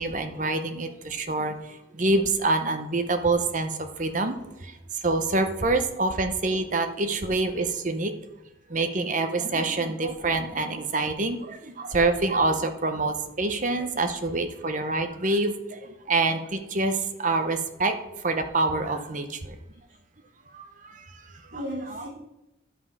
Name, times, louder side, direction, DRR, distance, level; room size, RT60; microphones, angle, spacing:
voice 1, 0.0-4.8 5.0-8.1 8.7-19.6 20.5-21.3 21.9-22.1, right 3 dB, 40° right, 7 dB, 0.7 m, -26 dB
voice 2, 21.3-22.1, equal, 60° right, -5 dB, 2.6 m, -38 dB
11.0 x 5.5 x 4.7 m, 0.92 s
head